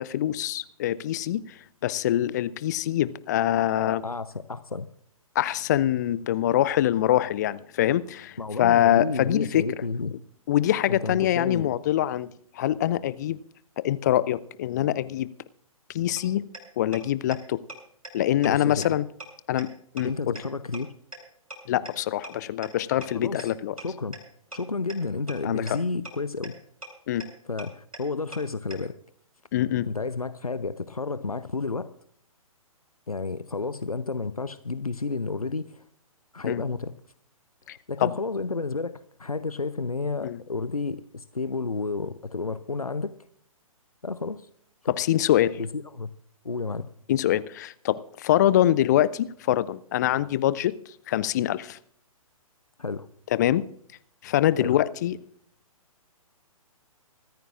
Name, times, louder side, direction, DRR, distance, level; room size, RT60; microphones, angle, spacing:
voice 1, 0.0-4.0 5.4-9.7 10.5-12.3 12.6-13.4 13.8-15.3 15.9-16.4 16.8-17.6 18.1-19.1 19.5-19.7 19.9-20.1 21.7-23.8 25.4-25.8 27.1-27.3 29.5-29.9 36.4-36.6 37.7-38.2 40.2-40.4 44.9-45.6 47.1-50.8 51.1-51.8 53.3-53.6 54.2-55.2, left 12 dB, 30° left, 0.5 m, -24 dB
voice 2, 3.8-4.9 8.4-10.1 10.9-11.7 18.4-18.9 20.0-20.9 23.1-23.5 23.8-24.2 24.5-26.5 27.5-28.9 29.9-31.9 33.1-35.7 36.3-36.9 37.9-43.1 44.0-44.4 44.8-44.9 45.6-46.1 46.4-46.9 52.8-53.1 54.6-54.8, left 4 dB, 85° left, 0.7 m, -31 dB
sound 1, 16.2-16.3 16.5-16.6 16.9-17.0 17.3-17.4 17.7-17.8 18.0-18.1 18.4-18.5 18.8-18.9 19.2-19.3 19.6-19.7 20.0-20.1 20.4-20.5 20.7-20.8 21.1-21.2 21.5-21.6 21.9-22.0 22.2-22.3 22.6-22.7 23.0-23.1 23.4-23.5 23.8-23.9 24.1-24.2 24.5-24.6 24.9-25.0 25.3-25.4 25.7-25.8 26.0-26.1 26.4-26.5 26.8-26.9 27.2-27.3 27.6-27.7 27.9-28.0 28.3-28.4 28.7-28.8, right 2 dB, 75° right, 6.8 m, -38 dB
24.5 x 14.0 x 2.5 m
figure-of-eight pair, 125°, 18 cm